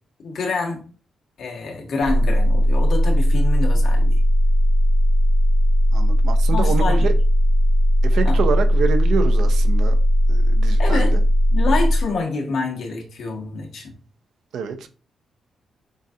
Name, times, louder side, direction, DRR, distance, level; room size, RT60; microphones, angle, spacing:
voice 1, 0.2-0.8 1.4-4.2 6.5-7.1 8.2-8.4 10.8-11.1 11.5-13.9, left 3 dB, 65° left, 1.3 m, -27 dB
sound 1, 2.0-12.0, equal, 60° right, 1.3 m, -17 dB
voice 2, 5.9-7.1 8.0-10.0 10.3-11.2 14.5-14.9, right 6 dB, 80° right, 0.6 m, -26 dB
7.3 x 2.5 x 2.8 m
wide cardioid pair, 160°, 0 cm